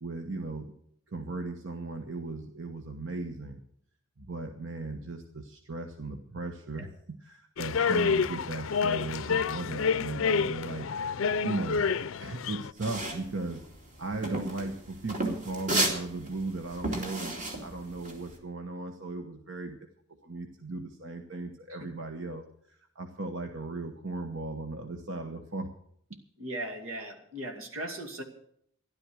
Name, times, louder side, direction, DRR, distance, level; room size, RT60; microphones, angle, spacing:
voice 1, 0.0-0.7 1.1-3.6 4.2-10.9 11.4-11.9 12.2-13.6 14.0-19.8 20.2-25.7 26.1-26.2, right 2 dB, 65° right, 5 dB, 1.2 m, -37 dB
sound 1, 7.6-12.7, left 5 dB, 75° left, 0.5 m, -28 dB
sound 2, 12.8-18.3, right 2 dB, 40° right, 2.6 m, -33 dB
voice 2, 26.4-28.2, right 1 dB, 90° right, 5 dB, 2.4 m, -38 dB
13.5 x 11.5 x 6.3 m, 0.68 s
head